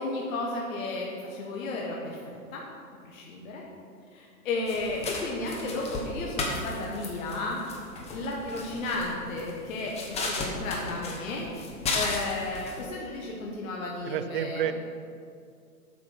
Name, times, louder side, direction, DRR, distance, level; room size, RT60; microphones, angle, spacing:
voice 1, 0.0-2.6 3.0-3.6 4.1-7.6 8.1-11.5 11.9-14.7, left 2 dB, 60° left, -2 dB, 1.4 m, -33 dB
sound 1, 4.7-12.8, left 3 dB, 15° left, 1.0 m, -35 dB
voice 2, 14.1-14.7, right 10 dB, 40° right, 11 dB, 0.4 m, -29 dB
8.3 x 5.9 x 5.9 m, 2.3 s
hypercardioid pair, 140°, 45 cm